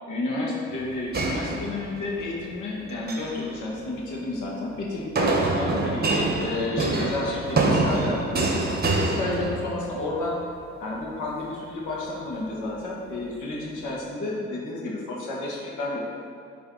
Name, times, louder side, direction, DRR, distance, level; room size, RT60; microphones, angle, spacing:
voice 1, 0.1-8.2 8.9-10.3 10.8-16.0, left 2 dB, 80° left, -3 dB, 1.7 m, -31 dB
sound 1, 1.1-2.2 2.9-3.4 5.2-10.0, right 2 dB, 30° right, 1.0 m, -25 dB
10.0 x 3.4 x 3.9 m, 2.4 s
cardioid pair, 90°, 30 cm